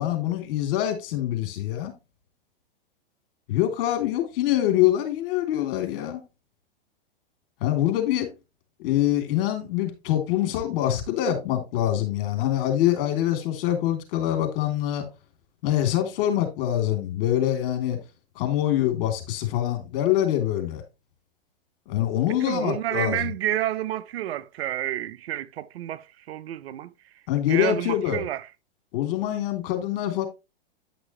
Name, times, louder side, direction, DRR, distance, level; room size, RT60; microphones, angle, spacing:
voice 1, 0.0-1.9 3.5-6.2 7.6-8.3 8.8-15.0 15.6-18.0 18.3-20.8 21.9-23.3 27.3-28.2 28.9-30.3, left 12 dB, 60° left, 3.4 m, -25 dB
voice 2, 22.4-26.9 27.5-28.5, right 13 dB, 75° right, 0.8 m, -29 dB
10.5 x 6.1 x 3.2 m
hypercardioid pair, 130°, 31 cm